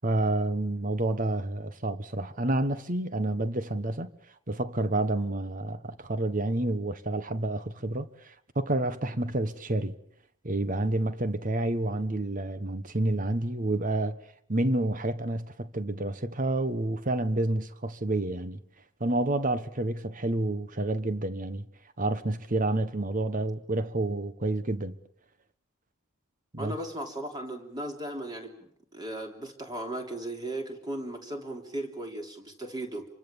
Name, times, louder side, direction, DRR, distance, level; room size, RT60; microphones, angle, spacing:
voice 1, 0.0-4.1 4.5-10.0 10.4-14.2 14.5-18.6 19.0-21.7 22.0-25.0 26.5-26.8, right 2 dB, 40° right, 1.3 m, -29 dB
voice 2, 26.6-33.1, right 1 dB, 20° right, 3.4 m, -37 dB
27.0 x 24.5 x 7.1 m
head